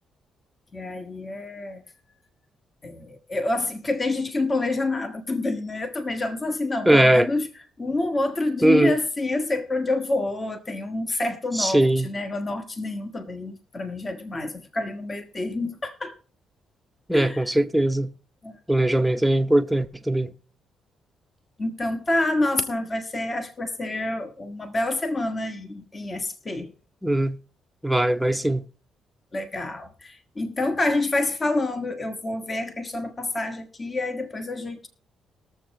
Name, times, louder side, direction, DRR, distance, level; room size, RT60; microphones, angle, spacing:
voice 1, 0.7-1.8 2.8-7.5 7.8-16.1 17.1-17.4 18.4-18.6 21.6-26.7 29.3-34.9, left 2 dB, 30° left, 1.3 m, -28 dB
voice 2, 6.9-7.3 8.6-9.0 11.5-12.1 17.1-18.1 18.7-20.3 27.0-27.4 27.8-28.6, right 1 dB, 5° right, 0.7 m, -20 dB
20.5 x 7.1 x 3.1 m
cardioid pair, 90°, 0 cm